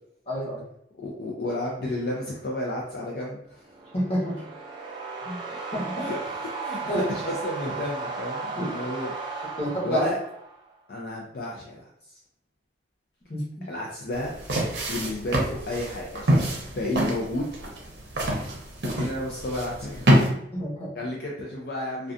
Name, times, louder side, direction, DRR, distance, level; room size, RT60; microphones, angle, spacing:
voice 1, 0.3-0.6 3.9-4.4 5.3-5.4 5.7-6.0 6.9-7.0 8.6-8.7 9.6-10.1 13.3-13.7 20.5-20.9, equal, 30° left, -5 dB, 0.9 m, -28 dB
voice 2, 1.0-3.6 5.5-5.6 6.0-9.1 9.8-10.2 10.9-12.2 13.7-14.3 14.9-16.5 16.7-17.5 18.8-20.2 20.9-22.1, left 1 dB, 55° left, -3 dB, 0.4 m, -32 dB
sound 1, 3.6-10.7, right 4 dB, 25° right, 0.4 m, -35 dB
sound 2, 14.1-20.3, right 1 dB, 60° right, 0.6 m, -26 dB
2.4 x 2.2 x 2.5 m, 0.75 s
head